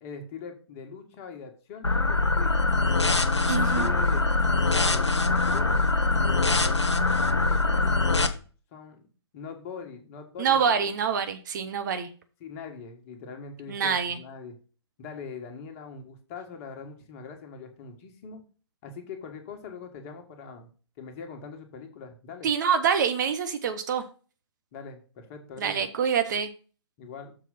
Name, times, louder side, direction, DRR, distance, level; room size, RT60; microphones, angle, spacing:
voice 1, 0.0-2.5 3.3-4.3 4.7-5.8 6.1-6.8 7.4-8.4 8.7-9.1 9.3-10.9 12.4-14.5 15.0-18.4 18.8-20.7 21.0-22.5 24.7-25.9 27.0-27.4, left 6 dB, 30° left, 4 dB, 1.5 m, -42 dB
sound 1, 1.8-8.3, left 3 dB, 80° left, 0.9 m, -23 dB
voice 2, 3.5-3.9 10.4-12.1 13.7-14.2 22.4-24.0 25.6-26.5, right 7 dB, 45° right, 9 dB, 0.9 m, -26 dB
6.9 x 4.7 x 5.5 m, 0.36 s
figure-of-eight pair, 125°, 14 cm